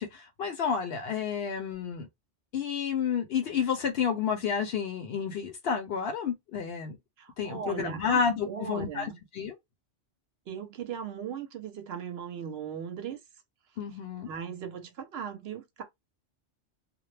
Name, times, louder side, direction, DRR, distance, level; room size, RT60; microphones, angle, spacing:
voice 1, 0.0-2.1 2.5-7.0 7.4-9.6 13.8-14.3, left 6 dB, 65° left, 0.7 m, -30 dB
voice 2, 7.2-9.2 10.5-13.2 14.3-15.8, right 8 dB, 70° right, 0.8 m, -38 dB
2.2 x 2.0 x 3.1 m
omnidirectional pair, 1.2 m